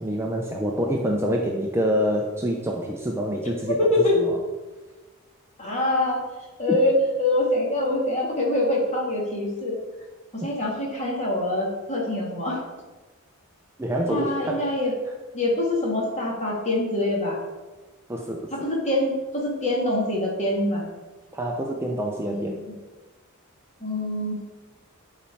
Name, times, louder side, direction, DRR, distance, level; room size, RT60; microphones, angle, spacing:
voice 1, 0.0-4.4 6.7-6.8 10.4-10.5 13.8-14.7 18.1-18.7 21.3-22.6, equal, 10° right, 0 dB, 0.6 m, -27 dB
voice 2, 3.6-4.2 5.6-6.2 6.6-9.8 10.3-12.6 14.1-14.9 15.3-17.4 18.5-20.8 22.2-22.7 23.8-24.4, left 1 dB, 30° left, -3 dB, 2.1 m, -24 dB
11.0 x 4.2 x 4.6 m, 1.2 s
head